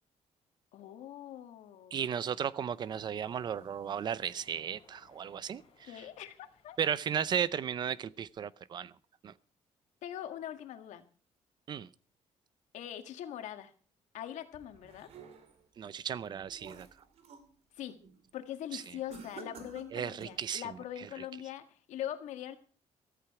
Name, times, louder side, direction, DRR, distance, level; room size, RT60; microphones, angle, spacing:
voice 1, 0.7-1.9 5.8-6.8 10.0-11.1 12.7-13.7 14.1-15.1 17.8-18.0 18.3-22.6, left 11 dB, 90° left, 1.8 m, -42 dB
voice 2, 1.9-6.1 6.8-8.9 9.2-9.3 11.7-11.9 15.8-16.9 18.7-18.9 19.9-21.2, right 8 dB, 40° right, 0.6 m, -35 dB
Waves surf, 2.7-8.1, left 5 dB, 50° left, 4.8 m, -64 dB
sound 1, 14.5-15.7 16.2-17.5 17.9-18.2 19.1-20.5, right 4 dB, 60° right, 2.6 m, -51 dB
14.5 x 14.0 x 4.8 m
cardioid pair, 175°, 12 cm